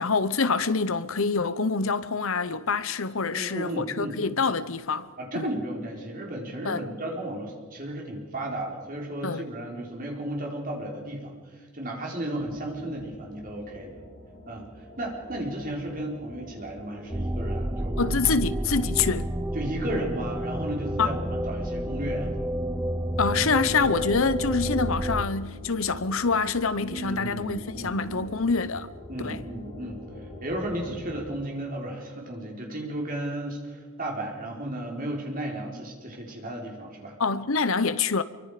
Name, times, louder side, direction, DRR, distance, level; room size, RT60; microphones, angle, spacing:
voice 1, 0.0-5.1 5.4-5.5 6.6-6.8 9.2-9.4 18.0-19.3 21.0-21.2 23.2-28.9 29.2-29.4 37.2-38.2, left 4 dB, 65° left, 0.9 m, -26 dB
voice 2, 3.3-4.2 5.2-14.0 14.5-18.0 19.5-22.3 23.5-23.6 26.8-28.3 29.1-30.0 30.4-37.1, right 1 dB, 40° right, 4.3 m, -34 dB
sound 1, 12.4-31.2, left 1 dB, 15° left, 7.9 m, -45 dB
sound 2, 17.1-25.2, right 1 dB, 10° right, 0.6 m, -30 dB
26.0 x 24.0 x 5.1 m
head